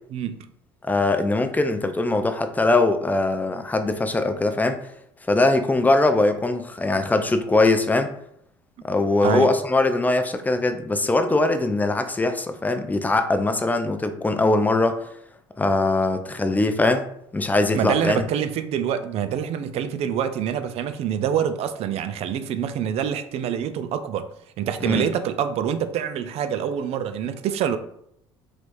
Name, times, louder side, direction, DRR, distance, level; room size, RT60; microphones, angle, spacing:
voice 1, 0.1-0.5 9.2-9.5 17.7-24.3 24.6-27.8, right 8 dB, 50° right, 10 dB, 0.4 m, -26 dB
voice 2, 0.8-4.8 5.3-8.1 8.8-15.0 15.6-17.1 17.3-18.2 24.9-25.1, left 2 dB, 15° left, 7 dB, 0.4 m, -21 dB
3.2 x 3.2 x 2.6 m, 0.73 s
hypercardioid pair, 65°, 13 cm